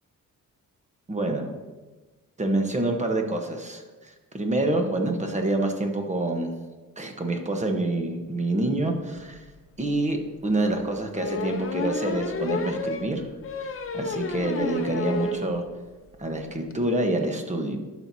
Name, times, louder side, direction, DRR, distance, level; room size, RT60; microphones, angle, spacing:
voice 1, 1.1-1.5 2.4-6.5 7.0-9.4 9.8-13.3 13.6-15.6 16.2-17.8, right 2 dB, 20° right, 4 dB, 1.1 m, -27 dB
sound 1, 9.4-9.5 9.8-9.9 11.1-15.4 15.8-15.9 16.2-16.3 16.5-16.7, left 3 dB, 40° left, 0.7 m, -31 dB
11.5 x 6.2 x 2.8 m, 1.2 s
cardioid pair, 105°, 34 cm